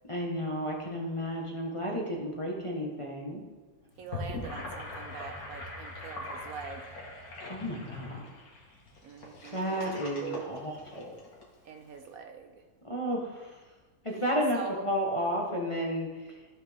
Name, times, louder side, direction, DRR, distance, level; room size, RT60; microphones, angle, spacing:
voice 1, 0.1-3.4 7.5-8.2 9.5-11.2 12.8-13.6 14.0-14.6 14.8-16.4, equal, 20° left, -2 dB, 1.0 m, -32 dB
Gurgling / Sink (filling or washing), 3.9-11.4, left 2 dB, 60° left, 2.1 m, -42 dB
voice 2, 4.0-6.9 9.0-10.6 11.6-12.6 14.5-14.8, right 5 dB, 65° right, 5 dB, 1.0 m, -43 dB
14.5 x 5.9 x 3.5 m, 1.3 s
omnidirectional pair, 1.7 m